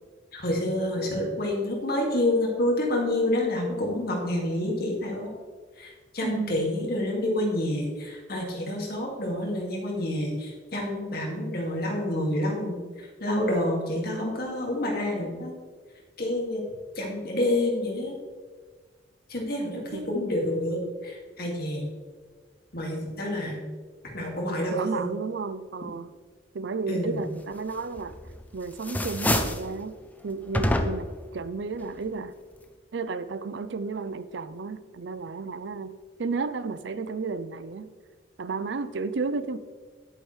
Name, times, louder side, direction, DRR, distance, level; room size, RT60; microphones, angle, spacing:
voice 1, 0.3-5.3 5.8-15.5 16.2-16.6 17.0-18.2 19.3-21.9 22.7-23.6 24.1-25.1 26.9-27.2, left 1 dB, 60° left, -1 dB, 2.2 m, -28 dB
voice 2, 6.2-6.7 19.9-20.2 24.7-26.1 26.5-28.2 28.5-29.9 30.2-32.3 32.9-35.9 36.2-37.9 38.4-39.6, right 4 dB, 80° right, 14 dB, 0.5 m, -32 dB
sound 1, 28.0-28.4 28.7-29.7 30.5-31.2, left 1 dB, 10° left, 0.6 m, -26 dB
10.5 x 8.7 x 3.3 m, 1.5 s
head